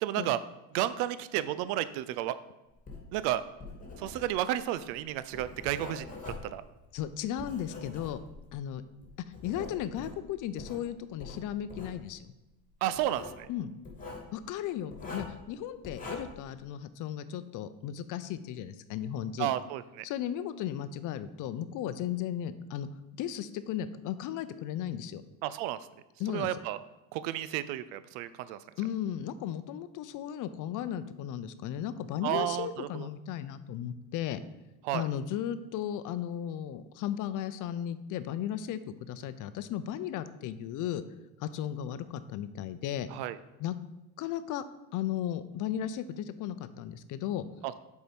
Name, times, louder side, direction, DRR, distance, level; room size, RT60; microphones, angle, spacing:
voice 1, 0.0-0.4 0.7-2.4 3.1-3.4 4.0-6.2 6.4-6.6 12.8-13.5 19.4-20.0 25.4-25.8 26.3-26.8 27.1-28.6 32.2-32.9 34.8-35.1 43.1-43.4 47.6-47.8, right 13 dB, 80° right, 14 dB, 0.5 m, -32 dB
Writing, 2.7-8.5 9.0-10.8 11.2-12.0 12.9-13.4 13.8-14.3 14.9-15.4 15.8-16.4, left 3 dB, 20° left, 2.2 m, -44 dB
voice 2, 6.9-8.2 8.5-8.8 9.4-12.3 13.5-13.7 14.3-19.5 20.0-22.9 23.2-25.2 26.2-26.6 28.8-34.4 34.9-41.0 41.4-43.1 43.6-43.8 44.2-44.6 44.9-47.5, left 10 dB, 55° left, 13 dB, 0.6 m, -35 dB
6.7 x 4.7 x 5.2 m, 1.0 s
supercardioid pair, 105°, 38 cm